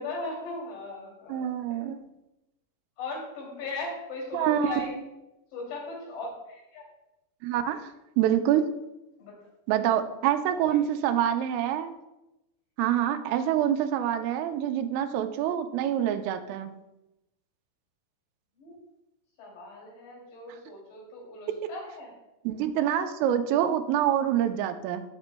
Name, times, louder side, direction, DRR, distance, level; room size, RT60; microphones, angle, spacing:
voice 1, 0.0-1.8 3.0-4.9 5.5-6.9 9.2-9.4 10.7-10.8 18.6-18.8 19.4-22.1 22.9-23.1, left 2 dB, 60° left, -4 dB, 4.7 m, -38 dB
voice 2, 1.3-2.0 4.3-4.8 7.4-7.8 8.2-8.7 9.7-11.9 12.8-16.7 20.5-20.6 22.5-25.0, right 10 dB, 90° right, 7 dB, 3.2 m, -26 dB
17.5 x 7.1 x 2.2 m, 0.94 s
omnidirectional pair, 5.6 m